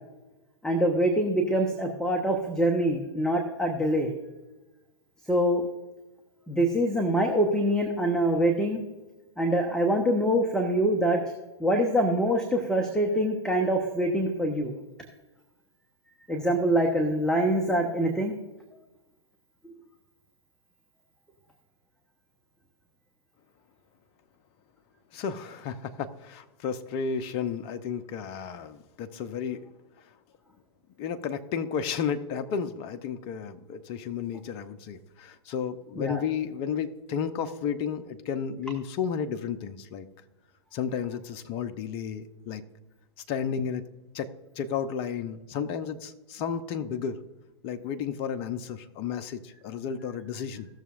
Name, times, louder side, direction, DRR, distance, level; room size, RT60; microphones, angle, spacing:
voice 1, 0.6-4.1 5.3-5.6 6.5-8.8 9.4-11.2 11.6-14.7 16.3-18.3 36.0-36.2, right 1 dB, 5° left, 1 dB, 1.1 m, -24 dB
voice 2, 25.1-29.7 31.0-40.1 40.7-42.6 43.3-43.8 44.1-44.3 44.6-47.2 47.6-50.7, left 7 dB, 35° left, 9 dB, 0.8 m, -32 dB
17.0 x 6.8 x 2.5 m, 1.1 s
hypercardioid pair, 115°, 15 cm